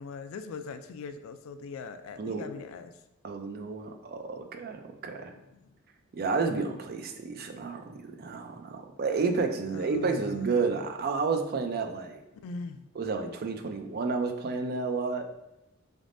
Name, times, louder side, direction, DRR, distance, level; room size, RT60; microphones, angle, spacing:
voice 1, 0.0-3.0 5.3-5.7 9.7-10.7 12.4-12.9, left 4 dB, 75° left, 11 dB, 0.3 m, -41 dB
voice 2, 3.2-5.3 6.1-12.2 13.0-15.2, right 4 dB, 50° right, 5 dB, 0.4 m, -31 dB
4.0 x 3.5 x 2.6 m, 0.89 s
head